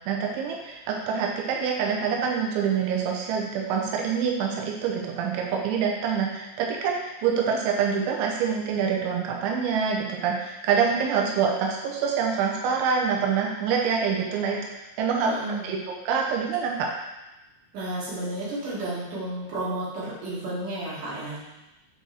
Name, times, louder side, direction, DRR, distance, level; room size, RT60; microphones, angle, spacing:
voice 1, 0.1-14.6 15.0-15.3 15.6-16.9, right 6 dB, 90° right, 0 dB, 3.2 m, -26 dB
voice 2, 15.2-15.7 17.7-21.4, right 1 dB, 50° right, -8 dB, 3.2 m, -32 dB
7.6 x 4.5 x 3.4 m, 0.99 s
omnidirectional pair, 5.2 m